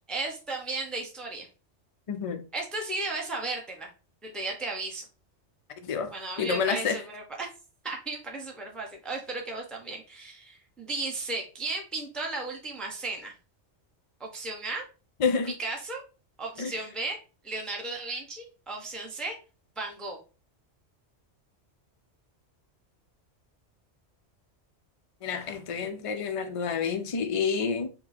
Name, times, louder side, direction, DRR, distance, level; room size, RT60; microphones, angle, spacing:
voice 1, 0.1-1.5 2.5-3.9 4.2-5.0 6.1-7.5 7.8-13.3 14.2-14.8 15.6-16.0 16.4-17.2 17.4-19.3 19.8-20.2, right 3 dB, ahead, 0.8 m, -35 dB
voice 2, 2.1-2.4 5.8-7.0 15.2-15.5 16.6-16.7 25.2-27.9, left 5 dB, 40° left, 0.5 m, -29 dB
4.8 x 2.3 x 4.1 m
omnidirectional pair, 1.2 m